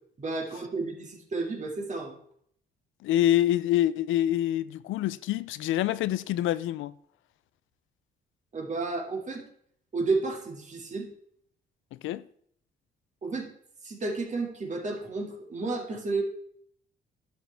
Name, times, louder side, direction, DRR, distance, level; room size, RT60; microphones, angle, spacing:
voice 1, 0.2-2.2 8.5-9.4 9.9-11.1 13.2-13.5 13.8-16.2, right 3 dB, 35° right, 2.2 m, -32 dB
voice 2, 3.0-6.9 12.0-12.2, left 13 dB, 80° left, 0.5 m, -26 dB
11.5 x 6.4 x 3.4 m
cardioid pair, 90°, 20 cm